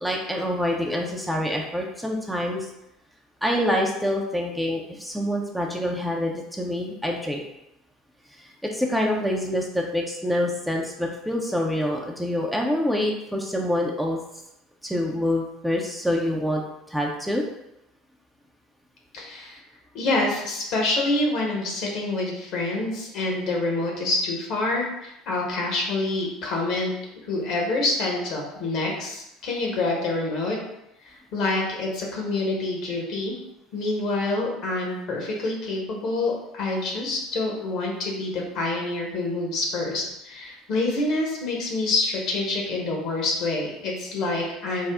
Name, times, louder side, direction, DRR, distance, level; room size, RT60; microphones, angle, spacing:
voice 1, 0.0-2.7 3.4-7.4 8.4-14.2 14.8-16.6 16.9-17.4, left 1 dB, ahead, 0 dB, 0.5 m, -26 dB
voice 2, 19.1-19.6 19.9-26.9 27.3-30.6 31.0-33.3 33.7-44.9, left 2 dB, 60° left, -1 dB, 1.0 m, -27 dB
3.5 x 2.0 x 3.5 m, 0.87 s
hypercardioid pair, 70°, 0 cm